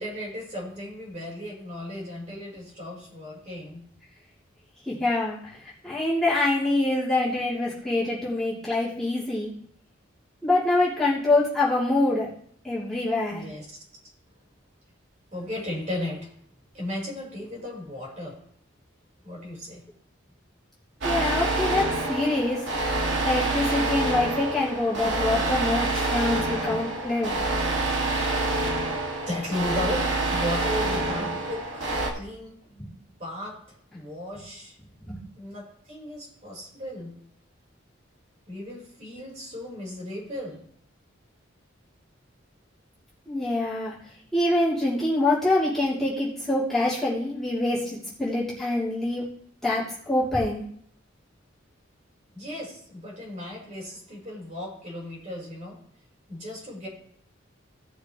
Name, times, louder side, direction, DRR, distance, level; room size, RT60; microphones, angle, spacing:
voice 1, 0.0-3.8 13.3-13.8 15.3-16.3 16.7-18.4 19.2-19.8 26.6-26.9 29.3-32.7 33.2-33.6 33.9-34.8 35.3-37.1 38.5-40.6 52.3-55.8 56.3-56.9, left 1 dB, 35° right, -4 dB, 4.8 m, -35 dB
voice 2, 4.8-9.5 10.4-12.3 12.6-13.4 21.0-22.6 23.2-27.4 31.2-31.3 32.8-32.9 34.3-34.4 35.0-35.2 43.3-43.9 44.3-49.2 49.6-50.6, left 2 dB, ahead, -12 dB, 3.3 m, -25 dB
sound 1, 21.0-32.1, right 2 dB, 65° right, 2.2 m, -27 dB
17.0 x 6.6 x 3.2 m, 0.66 s
head